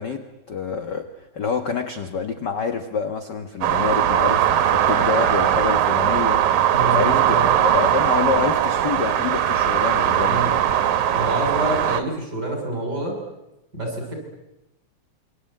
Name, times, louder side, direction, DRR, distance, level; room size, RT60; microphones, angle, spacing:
voice 1, 0.0-10.6, left 5 dB, 45° left, 8 dB, 1.6 m, -27 dB
sound 1, 3.6-12.0, right 10 dB, 80° right, 2.7 m, -20 dB
voice 2, 6.7-7.5 10.3-10.6 11.1-13.2 13.7-14.1, right 1 dB, 30° right, 3 dB, 7.7 m, -27 dB
27.0 x 24.5 x 8.9 m, 0.93 s
omnidirectional pair, 3.3 m